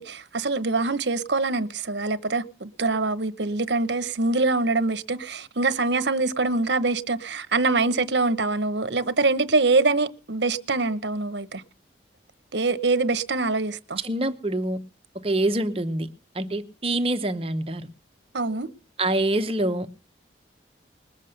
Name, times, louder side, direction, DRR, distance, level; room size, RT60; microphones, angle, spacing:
voice 1, 0.0-11.6 12.5-14.0 18.3-18.7, right 3 dB, 70° right, 0.9 m, -24 dB
voice 2, 14.0-14.8 15.2-16.1 16.3-17.9 19.0-19.9, right 1 dB, 30° right, 0.8 m, -25 dB
20.5 x 7.4 x 6.6 m
head